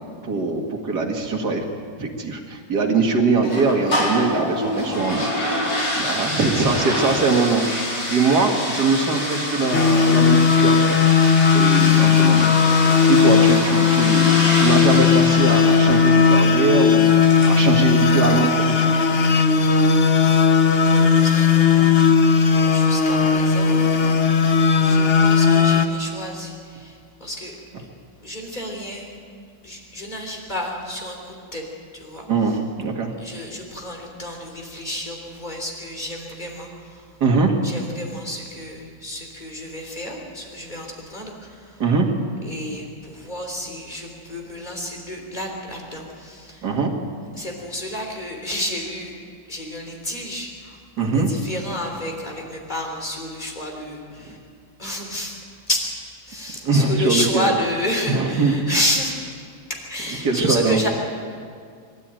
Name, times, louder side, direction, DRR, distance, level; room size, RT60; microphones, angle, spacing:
voice 1, 0.2-1.6 2.0-5.3 6.0-7.7 8.1-11.3 11.5-12.6 13.1-18.9 32.3-33.1 37.2-37.6 41.8-42.2 46.6-46.9 51.0-51.3 54.2-54.3 56.6-57.5 58.1-58.5 60.2-60.8, right 4 dB, 55° right, 2 dB, 2.6 m, -22 dB
sound 1, 3.4-18.7, left 1 dB, 60° left, 5.4 m, -27 dB
sound 2, 9.7-25.9, left 6 dB, 40° left, 1.0 m, -16 dB
voice 2, 19.5-20.4 20.8-24.0 24.7-27.9 28.2-29.0 29.6-31.6 31.9-32.3 33.2-37.0 37.6-41.8 42.4-46.7 47.4-49.1 49.5-54.4 54.8-55.4 55.7-55.9 56.3-59.1 59.9-60.9, left 1 dB, 20° left, 1 dB, 3.7 m, -30 dB
24.0 x 13.0 x 9.1 m, 2.2 s
omnidirectional pair, 2.1 m